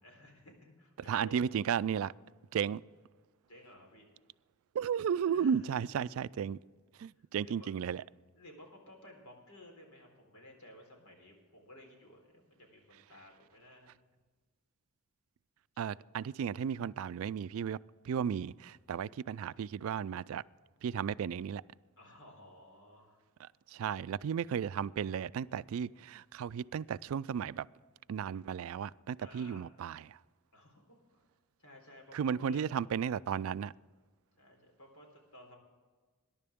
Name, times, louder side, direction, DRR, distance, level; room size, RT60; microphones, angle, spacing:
voice 1, 0.0-1.5 3.5-4.1 5.3-6.1 7.4-7.8 8.4-13.9 22.0-23.2 29.2-29.6 30.5-31.2 31.6-32.6 34.4-35.6, left 1 dB, 80° left, 3.9 m, -55 dB
voice 2, 1.1-2.1 2.5-2.8 4.7-6.6 7.0-8.0 15.8-17.8 18.0-20.4 20.8-21.6 23.4-27.7 28.1-30.2 32.1-33.7, right 7 dB, 70° right, 0.3 m, -34 dB
21.0 x 11.0 x 3.6 m
head